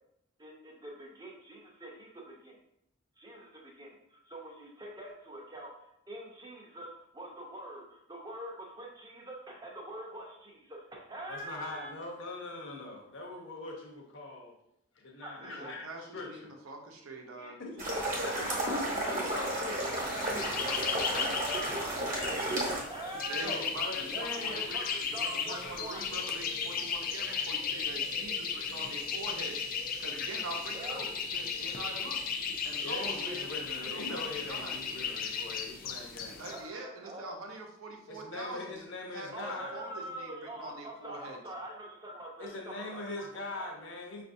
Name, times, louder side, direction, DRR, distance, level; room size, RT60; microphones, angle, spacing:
voice 1, 0.4-2.5 3.2-5.7 6.1-11.9 15.2-15.6 17.4-22.6 22.9-23.6 24.1-26.0 30.7-31.0 36.5-37.4 39.3-43.7, right 1 dB, 20° right, -1 dB, 0.6 m, -44 dB
voice 2, 11.3-14.6 15.0-16.5 17.6-17.9 18.2-19.9 23.4-24.6 32.8-36.4 38.1-39.8 42.4-44.2, left 2 dB, 60° left, 0 dB, 0.8 m, -42 dB
voice 3, 15.4-17.6 23.3-29.6 30.0-31.1 31.3-32.2 32.6-34.8 36.4-38.8 39.1-41.4, right 2 dB, 90° right, 2 dB, 0.7 m, -44 dB
sound 1, 17.8-22.8, right 1 dB, 40° right, 0.9 m, -32 dB
sound 2, 19.9-36.6, left 6 dB, 40° left, 0.3 m, -36 dB
5.3 x 2.5 x 2.6 m, 0.78 s
head